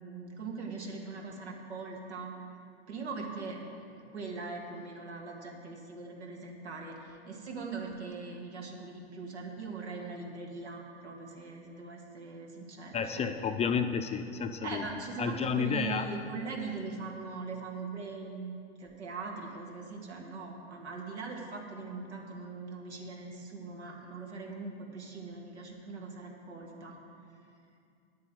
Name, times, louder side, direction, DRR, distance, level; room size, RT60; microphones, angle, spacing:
voice 1, 0.0-2.3 2.9-13.3 14.6-27.0, right 4 dB, 85° right, 0 dB, 2.3 m, -41 dB
voice 2, 12.9-14.8 15.2-16.1, left 6 dB, 20° left, 7 dB, 0.5 m, -31 dB
9.8 x 8.5 x 7.8 m, 2.5 s
hypercardioid pair, 110°, 33 cm